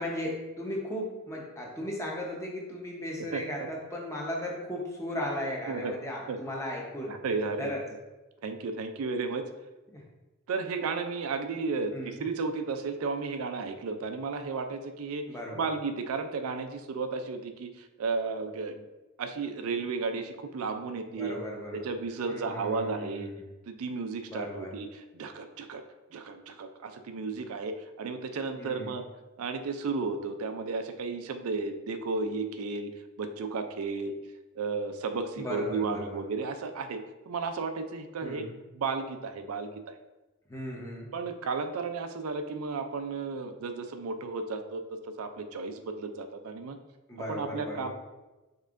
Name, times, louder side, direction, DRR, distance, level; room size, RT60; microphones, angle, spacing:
voice 1, 0.0-7.2 7.6-7.8 9.9-10.0 11.9-12.2 15.3-15.7 21.1-21.9 22.3-23.3 24.3-24.7 28.6-29.0 35.4-36.2 38.2-38.5 40.5-41.1 47.1-47.9, left 1 dB, 15° left, -2 dB, 0.8 m, -36 dB
voice 2, 3.2-3.7 5.7-5.9 6.3-6.4 7.1-7.7 8.4-9.5 10.5-15.3 15.5-18.8 19.2-21.4 21.7-23.3 23.7-25.8 26.1-29.0 29.4-34.2 34.5-37.0 37.3-38.5 38.7-40.0 41.1-46.8 47.2-47.9, right 4 dB, 80° right, 8 dB, 0.4 m, -33 dB
5.3 x 3.7 x 2.5 m, 1.1 s
head